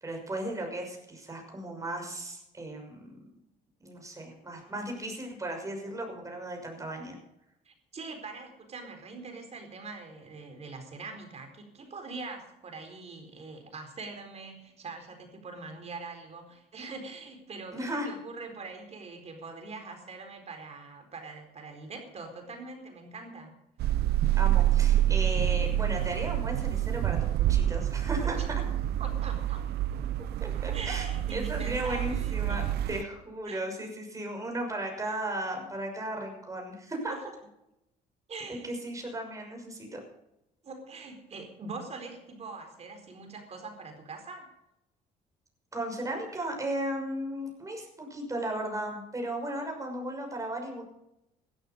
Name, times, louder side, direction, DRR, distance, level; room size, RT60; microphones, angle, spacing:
voice 1, 0.0-3.2 3.8-7.2 17.7-18.1 24.4-28.4 30.4-32.6 32.9-37.1 38.6-40.0 45.7-50.8, right 1 dB, 20° right, 2 dB, 6.2 m, -35 dB
voice 2, 7.6-23.5 28.2-28.4 29.0-29.6 30.7-32.6 33.5-33.6 37.1-37.2 38.3-38.7 40.6-44.5, right 3 dB, 40° right, 5 dB, 4.4 m, -43 dB
sound 1, 23.8-33.0, right 12 dB, 70° right, 0.7 m, -27 dB
16.0 x 13.0 x 5.2 m, 0.86 s
cardioid pair, 110°, 17 cm